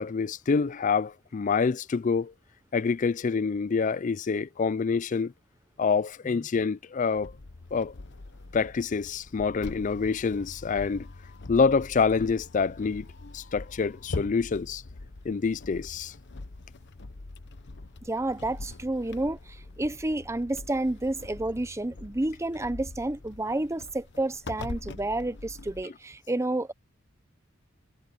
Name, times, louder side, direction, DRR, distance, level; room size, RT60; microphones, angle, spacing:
voice 1, 0.0-2.3 2.7-5.3 5.8-7.3 7.7-7.9 8.5-11.1 11.5-13.1 13.3-14.8 15.2-16.1, left 5 dB, 40° left, 0.4 m, -26 dB
sound 1, 7.1-25.8, left 2 dB, 60° left, 0.9 m, -43 dB
voice 2, 18.0-26.7, right 2 dB, 15° right, 0.6 m, -30 dB
head